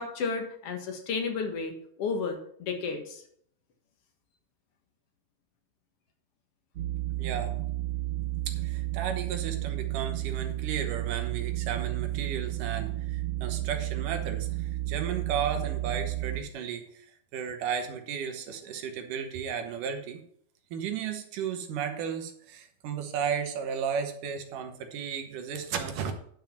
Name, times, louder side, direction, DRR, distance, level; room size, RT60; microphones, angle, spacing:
voice 1, 0.0-1.7 2.0-3.2, left 4 dB, 50° left, 4 dB, 2.0 m, -32 dB
sound 1, 6.8-16.4, right 17 dB, 90° right, 1.3 m, -32 dB
voice 2, 7.2-7.6 8.5-20.2 20.7-26.1, right 7 dB, 70° right, 6 dB, 2.5 m, -34 dB
10.5 x 5.6 x 5.8 m, 0.64 s
omnidirectional pair, 4.2 m